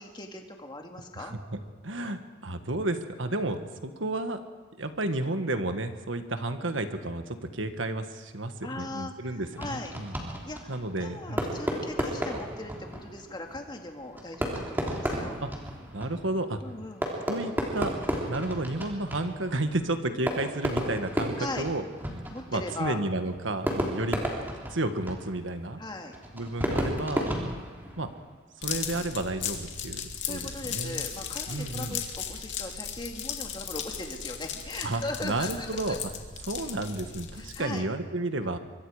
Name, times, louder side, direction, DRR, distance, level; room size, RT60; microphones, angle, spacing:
voice 1, 0.0-1.4 8.6-10.0 10.4-15.4 16.6-17.1 21.4-21.7 22.3-23.0 25.8-26.2 30.2-36.0 37.3-37.9, left 2 dB, 25° left, 3 dB, 2.1 m, -39 dB
voice 2, 1.1-4.4 4.8-10.1 10.7-11.4 15.4-15.5 15.9-16.6 17.3-17.9 18.3-21.9 22.5-24.2 24.7-25.8 26.3-27.3 28.0-28.1 28.6-30.0 30.3-31.0 31.5-32.0 34.8-36.0 36.5-38.6, right 2 dB, 80° right, 8 dB, 1.6 m, -32 dB
Fireworks, 9.5-28.3, equal, 10° right, 3.2 m, -34 dB
sound 1, 28.6-37.8, left 8 dB, 65° left, 2.5 m, -37 dB
25.0 x 23.5 x 5.0 m, 1.4 s
head